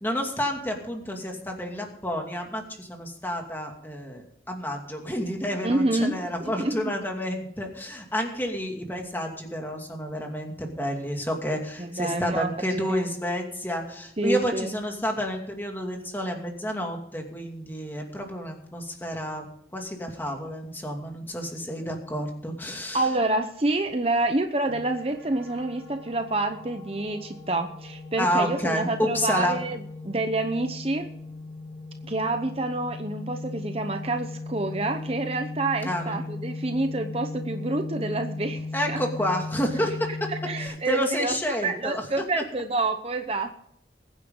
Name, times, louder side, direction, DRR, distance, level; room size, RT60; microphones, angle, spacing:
voice 1, 0.0-19.5 19.7-23.0 28.2-29.6 35.8-36.2 38.7-40.1 40.6-42.1, equal, 10° left, 2 dB, 2.4 m, -30 dB
voice 2, 5.6-6.9 11.8-13.1 14.2-14.7 22.9-31.1 32.1-39.0 40.3-41.4 41.6-43.6, right 2 dB, 35° right, 6 dB, 0.9 m, -28 dB
sound 1, 24.7-40.7, left 3 dB, 5° right, 5.3 m, -37 dB
22.0 x 9.6 x 3.9 m, 0.71 s
head